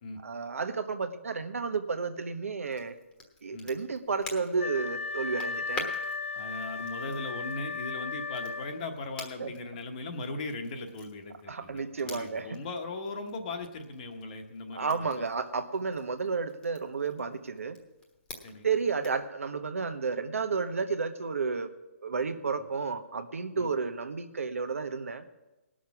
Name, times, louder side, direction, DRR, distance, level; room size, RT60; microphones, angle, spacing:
voice 1, 0.2-2.9 3.4-5.9 9.4-9.5 11.5-12.6 14.7-17.8 18.6-21.7 22.0-25.2, right 5 dB, 80° right, 8 dB, 1.1 m, -32 dB
Crackle, 2.6-19.3, left 2 dB, 10° left, 1.2 m, -49 dB
Wind instrument woodwind instrument, 4.6-9.0, left 4 dB, 80° left, 1.5 m, -36 dB
voice 2, 6.3-15.2 18.4-18.7 23.5-23.7, left 2 dB, 35° left, 5 dB, 1.1 m, -38 dB
18.5 x 6.4 x 5.9 m, 1.0 s
hypercardioid pair, 155°, 7 cm